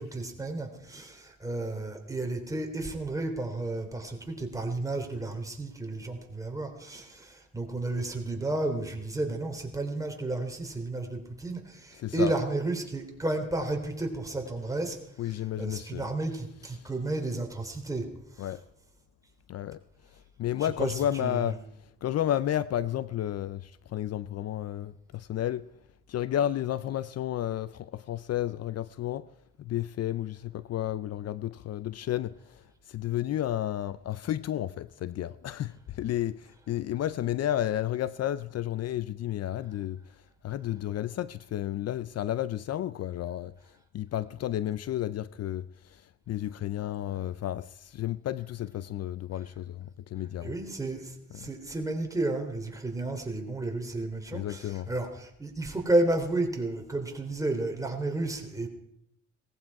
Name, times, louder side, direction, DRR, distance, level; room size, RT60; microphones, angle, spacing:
voice 1, 0.0-15.0 15.3-18.1 18.4-18.5 20.6-21.6 50.4-58.7, right 2 dB, 10° right, 3.3 m, -32 dB
voice 2, 12.0-12.3 15.2-16.1 18.4-18.6 19.5-19.8 20.4-21.6 22.0-25.7 26.1-29.3 29.6-40.0 40.4-43.5 43.9-50.5 51.3-51.5 54.3-54.9, left 12 dB, 55° left, 0.5 m, -32 dB
18.5 x 15.0 x 4.8 m
cardioid pair, 90°, 30 cm